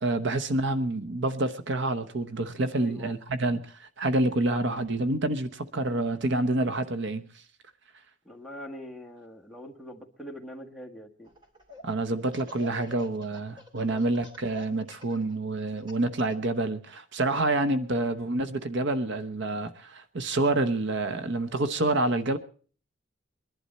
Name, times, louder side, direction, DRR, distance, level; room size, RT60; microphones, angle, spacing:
voice 1, 0.0-7.3 11.8-22.4, right 2 dB, 65° right, 11 dB, 0.9 m, -28 dB
voice 2, 2.7-3.2 8.2-11.3 13.8-14.0, equal, ahead, 5 dB, 1.7 m, -43 dB
Laughter, 11.2-11.8 12.2-16.5, left 1 dB, 25° right, 3.4 m, -46 dB
22.0 x 11.5 x 4.2 m, 0.42 s
head